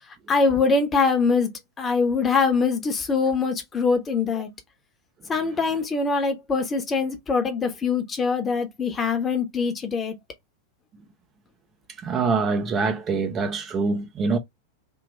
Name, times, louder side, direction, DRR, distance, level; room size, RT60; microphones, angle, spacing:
voice 1, 0.3-1.5 1.8-4.5 5.3-10.1, left 4 dB, 20° left, 1.1 m, -23 dB
voice 2, 12.0-14.4, right 4 dB, 25° right, 0.8 m, -24 dB
3.5 x 2.8 x 4.3 m
figure-of-eight pair, 90°, 0 cm